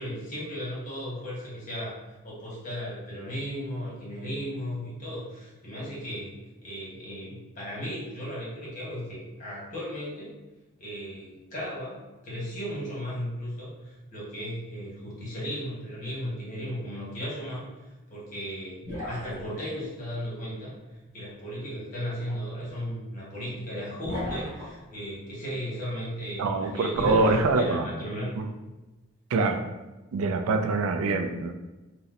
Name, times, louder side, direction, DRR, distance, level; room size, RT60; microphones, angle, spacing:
voice 1, 0.0-2.0 2.2-6.3 6.6-10.3 10.8-17.6 18.1-20.7 21.1-28.4, equal, 35° left, -6 dB, 1.0 m, -36 dB
sound 1, 18.8-19.8 22.2-22.3 24.0-24.8 26.9-27.5, equal, 15° right, 1.4 m, -34 dB
voice 2, 26.4-27.9 28.4-28.5 29.3-29.6 30.1-31.5, right 3 dB, 80° right, 6 dB, 0.3 m, -25 dB
4.1 x 2.0 x 2.4 m, 1.1 s
head